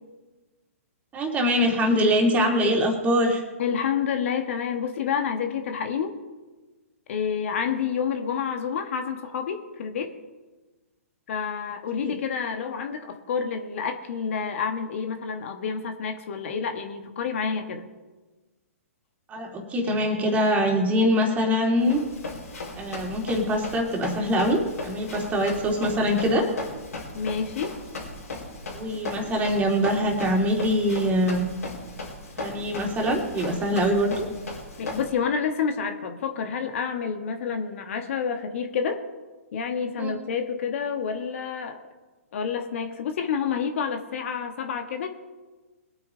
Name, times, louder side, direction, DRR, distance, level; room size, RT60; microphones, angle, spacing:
voice 1, 1.1-3.4 12.0-12.1 19.3-22.0 22.8-26.5 28.7-31.5 32.4-34.3 40.0-40.1, equal, 20° right, 1 dB, 2.9 m, -23 dB
voice 2, 3.6-6.2 7.1-10.2 11.3-17.9 27.1-27.8 34.8-39.0 39.5-41.8 42.3-45.1, left 6 dB, 55° left, 6 dB, 1.5 m, -29 dB
Run, 21.8-35.1, left 2 dB, 80° left, 4.5 m, -37 dB
22.0 x 9.2 x 3.9 m, 1.2 s
hypercardioid pair, 130°, 8 cm